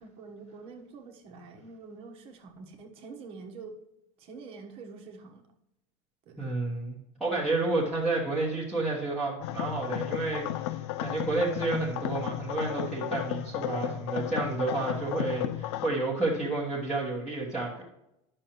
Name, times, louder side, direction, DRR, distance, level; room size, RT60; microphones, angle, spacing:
voice 1, 0.0-3.8 4.2-5.4 6.3-6.6, right 4 dB, 40° right, 4 dB, 1.3 m, -46 dB
voice 2, 6.4-17.8, right 3 dB, 5° right, -8 dB, 1.3 m, -30 dB
sound 1, 9.4-15.9, left 13 dB, 65° left, 0.5 m, -34 dB
10.5 x 6.4 x 3.0 m, 0.87 s
supercardioid pair, 155°, 15 cm